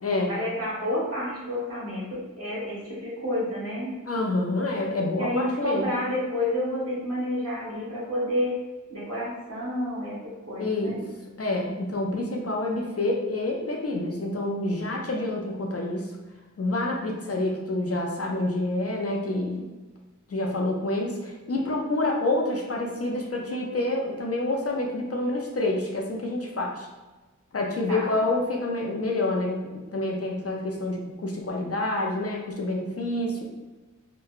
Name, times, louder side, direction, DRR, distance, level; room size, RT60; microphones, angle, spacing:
voice 1, 0.3-3.9 5.2-8.6 8.9-10.2 10.5-11.0 27.9-28.2, left 1 dB, 50° right, -8 dB, 1.4 m, -29 dB
voice 2, 4.1-5.9 10.6-11.0 11.4-16.1 16.6-19.7 20.3-26.9 27.5-33.4, left 2 dB, 50° left, 0 dB, 0.4 m, -28 dB
2.8 x 2.2 x 2.4 m, 1.2 s
wide cardioid pair, 50°, 31 cm